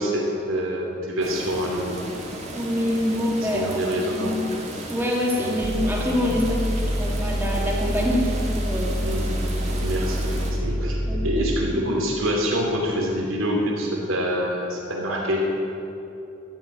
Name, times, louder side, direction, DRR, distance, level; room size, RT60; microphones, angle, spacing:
voice 1, 0.0-1.9 3.3-4.4 5.3-5.6 9.0-9.4 9.8-15.6, equal, 80° right, -1 dB, 2.9 m, -26 dB
sound 1, 1.2-10.5, right 1 dB, 35° right, 2.0 m, -36 dB
voice 2, 2.5-4.4 4.9-9.0 11.1-11.4, left 1 dB, 10° right, -2 dB, 2.2 m, -25 dB
sound 2, 5.6-11.8, equal, 50° left, 2.4 m, -26 dB
12.5 x 8.3 x 8.7 m, 2.8 s
head